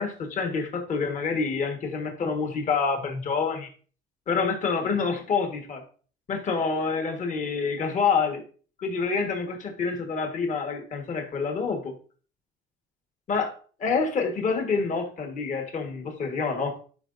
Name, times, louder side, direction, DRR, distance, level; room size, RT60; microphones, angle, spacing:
voice 1, 0.0-3.7 4.3-5.8 6.3-8.4 8.8-11.9 13.3-13.5 13.8-16.8, left 5 dB, 50° left, 3 dB, 1.5 m, -27 dB
11.0 x 4.7 x 2.6 m, 0.41 s
cardioid pair, 110°, 17 cm